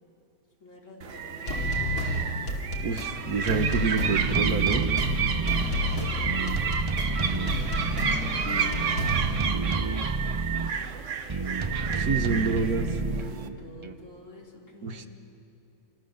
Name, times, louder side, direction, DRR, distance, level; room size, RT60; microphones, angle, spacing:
voice 1, 0.6-2.4 5.5-6.7 7.2-10.4 11.8-15.1, left 1 dB, 55° left, -2 dB, 4.0 m, -49 dB
sound 1, 1.0-13.5, right 7 dB, 60° right, 1.3 m, -31 dB
sound 2, 1.5-9.4, left 1 dB, 90° left, 3.0 m, -31 dB
voice 2, 2.8-4.9 12.0-12.9 14.8-15.1, right 4 dB, 90° right, 8 dB, 1.7 m, -27 dB
sound 3, 4.2-8.6 9.1-10.7 11.3-13.9, right 3 dB, 30° right, 0.6 m, -30 dB
28.5 x 25.0 x 6.8 m, 2.9 s
omnidirectional pair, 1.6 m